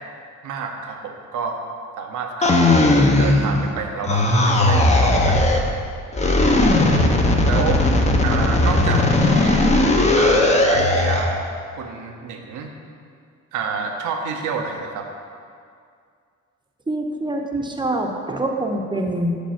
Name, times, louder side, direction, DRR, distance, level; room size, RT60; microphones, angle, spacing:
voice 1, 0.4-1.6 2.0-2.6 3.2-5.7 7.4-7.8 8.2-9.7 10.1-11.5 11.8-12.7 13.5-15.1, right 5 dB, 85° right, 3 dB, 0.9 m, -28 dB
sound 1, 2.4-3.7 4.0-5.7 6.1-11.3, left 2 dB, 20° left, 0.8 m, -17 dB
voice 2, 16.9-19.3, right 1 dB, 15° right, 2 dB, 0.8 m, -25 dB
6.3 x 5.2 x 5.7 m, 2.2 s
cardioid pair, 90°, 30 cm